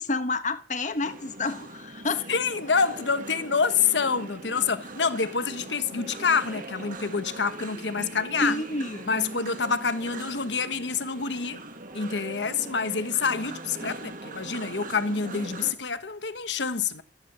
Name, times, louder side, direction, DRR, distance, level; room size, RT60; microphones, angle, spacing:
voice 1, 0.0-2.3 8.4-9.1, left 2 dB, 45° left, 1.3 m, -29 dB
sound 1, 1.0-15.7, right 2 dB, 50° right, 1.8 m, -41 dB
voice 2, 2.3-8.6 9.0-11.6 11.9-17.0, left 5 dB, 85° left, 1.2 m, -27 dB
13.5 x 10.5 x 6.9 m
head